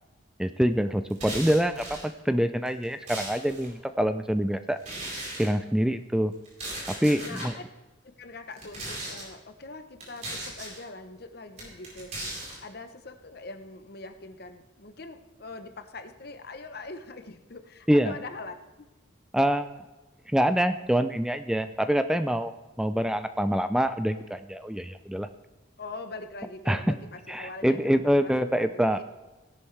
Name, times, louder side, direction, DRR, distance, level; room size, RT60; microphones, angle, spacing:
voice 1, 0.4-4.8 5.4-6.3 7.0-7.5 17.9-18.1 19.3-19.8 20.3-25.3 26.7-27.0 27.3-29.0, equal, 5° right, 9 dB, 0.3 m, -25 dB
sound 1, 1.1-2.1 2.7-3.7 4.8-5.5 6.4-7.5 8.5-9.3 10.0-10.8 11.6-12.6, right 1 dB, 40° right, 4.4 m, -37 dB
voice 2, 7.2-7.6 8.2-12.2 12.6-18.9 25.8-29.0, left 3 dB, 55° left, 8 dB, 0.9 m, -43 dB
17.0 x 11.0 x 3.3 m, 1.1 s
head